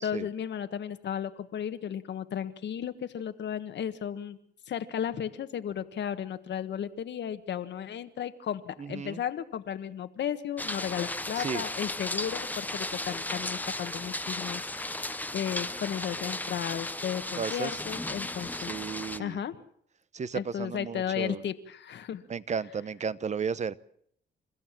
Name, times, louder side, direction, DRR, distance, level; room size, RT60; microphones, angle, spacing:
voice 1, 0.0-4.4 4.7-18.7 19.2-19.6 20.3-22.2, left 9 dB, 65° left, 10 dB, 1.5 m, -34 dB
voice 2, 8.8-9.2 11.4-11.7 17.4-17.8 18.5-19.4 20.1-21.4 22.3-23.8, right 6 dB, 35° right, 18 dB, 0.9 m, -34 dB
sound 1, 10.6-19.2, left 2 dB, 10° left, 0.9 m, -35 dB
29.5 x 14.5 x 7.5 m, 0.68 s
cardioid pair, 90°, 20 cm